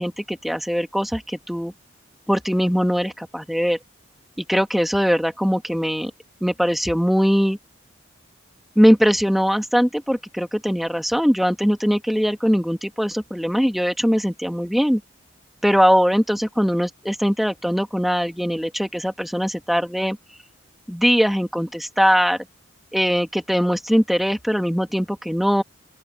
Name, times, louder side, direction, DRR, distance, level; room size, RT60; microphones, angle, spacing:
voice 1, 0.0-1.7 2.3-3.8 4.4-6.1 6.4-7.6 8.8-15.0 15.6-20.2 20.9-22.4 22.9-25.6, equal, ahead, 1.2 m, -21 dB
open air
head